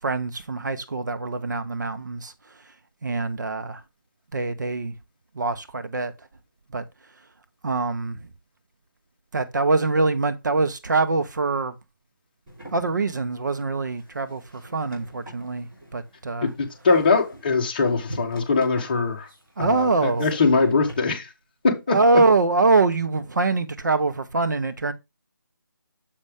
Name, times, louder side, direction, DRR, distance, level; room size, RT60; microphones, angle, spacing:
voice 1, 0.0-2.3 3.0-3.8 4.3-4.9 5.3-6.1 6.7-6.8 7.6-8.2 9.3-11.7 12.7-16.5 19.6-20.3 21.9-24.9, right 3 dB, 60° right, 0.9 m, -24 dB
sound 1, 12.5-21.0, equal, 15° right, 3.8 m, -43 dB
voice 2, 16.4-19.3 19.6-21.3 21.6-22.0, left 4 dB, 25° left, 1.2 m, -22 dB
7.0 x 5.4 x 3.5 m
figure-of-eight pair, 170°, 11 cm